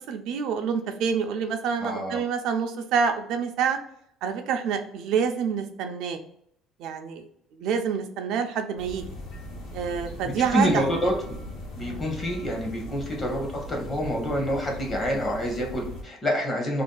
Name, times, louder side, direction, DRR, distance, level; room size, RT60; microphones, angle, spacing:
voice 1, 0.1-3.8 4.2-6.2 6.8-7.3 7.6-9.0 9.7-11.0 11.8-12.0, right 6 dB, 65° right, 6 dB, 0.4 m, -27 dB
voice 2, 1.8-2.2 10.2-11.1 11.8-16.8, equal, 25° left, 1 dB, 0.8 m, -27 dB
sound 1, 8.8-16.0, left 1 dB, 65° left, 1.0 m, -39 dB
2.5 x 2.3 x 3.7 m, 0.70 s
cardioid pair, 170°, 0 cm